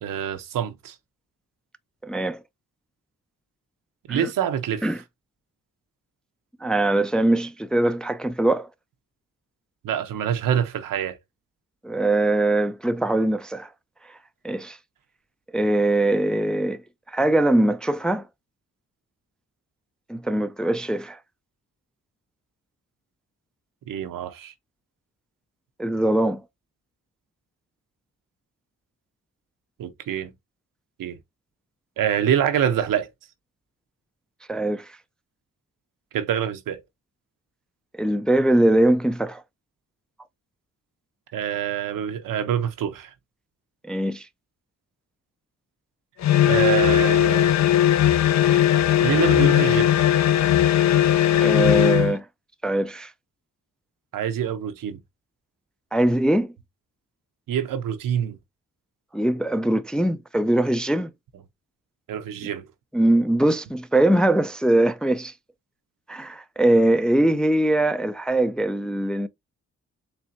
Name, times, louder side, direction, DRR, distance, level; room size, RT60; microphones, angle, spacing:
voice 1, 0.0-0.9 4.1-4.9 9.8-11.2 23.9-24.5 29.8-30.3 31.0-31.2 32.0-33.1 36.1-36.8 41.3-43.1 46.4-47.5 49.0-49.9 54.1-55.0 57.5-58.4 62.1-62.7, right 9 dB, 90° right, 0.7 m, -25 dB
voice 2, 2.0-2.4 4.1-4.3 4.8-5.0 6.6-8.7 11.8-13.7 14.4-14.8 15.5-16.8 17.1-18.3 20.1-21.2 25.8-26.4 34.5-34.9 37.9-39.4 43.8-44.3 51.4-52.3 52.6-53.1 55.9-56.5 59.1-61.1 62.9-65.3 66.1-69.3, right 1 dB, 5° left, 0.3 m, -21 dB
sound 1, 46.2-52.2, left 11 dB, 60° left, 0.5 m, -18 dB
4.4 x 3.3 x 2.5 m
cardioid pair, 80°, 32 cm